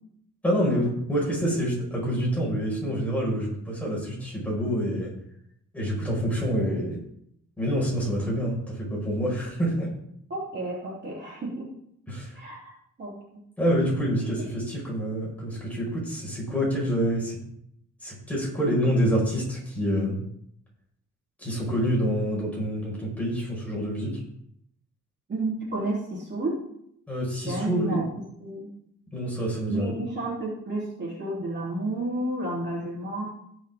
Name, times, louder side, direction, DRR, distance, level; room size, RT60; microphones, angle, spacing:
voice 1, 0.4-5.1 5.7-7.0 7.6-9.9 12.1-12.4 13.6-17.4 18.0-20.2 21.4-24.2 27.1-28.0 29.1-29.9, equal, 5° left, -5 dB, 5.2 m, -27 dB
voice 2, 10.3-11.6 12.3-12.7 13.0-13.4 18.6-18.8 25.3-26.5 27.5-28.0 28.4-28.7 29.7-33.3, right 2 dB, 35° right, -5 dB, 3.4 m, -31 dB
19.0 x 6.5 x 3.6 m, 0.72 s
wide cardioid pair, 175°, 30 cm